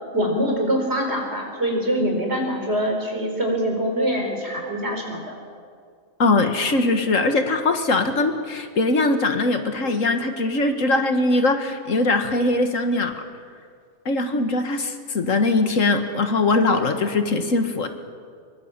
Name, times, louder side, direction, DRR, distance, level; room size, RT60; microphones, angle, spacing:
voice 1, 0.1-5.3, equal, 50° right, 2 dB, 4.7 m, -24 dB
voice 2, 6.2-13.2 14.1-17.9, left 2 dB, 65° left, 7 dB, 1.9 m, -21 dB
24.0 x 23.5 x 7.4 m, 2.1 s
omnidirectional pair, 1.5 m